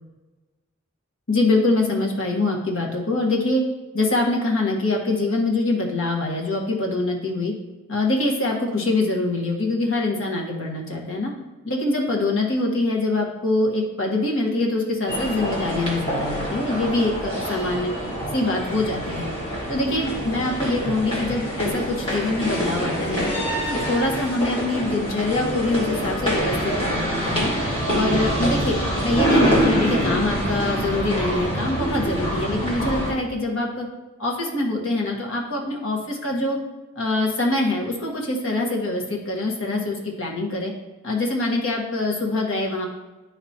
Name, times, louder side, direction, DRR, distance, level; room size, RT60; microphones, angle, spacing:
voice 1, 1.3-3.6 3.9-7.5 7.9-11.3 11.6-17.9 18.3-19.3 19.7-23.3 23.7-27.5 27.9-33.9 34.2-36.6 36.9-40.7 41.0-42.9, left 2 dB, 75° left, -1 dB, 1.4 m, -24 dB
sound 1, 15.1-33.1, equal, 25° left, 1.6 m, -25 dB
10.5 x 3.9 x 2.9 m, 1.2 s
head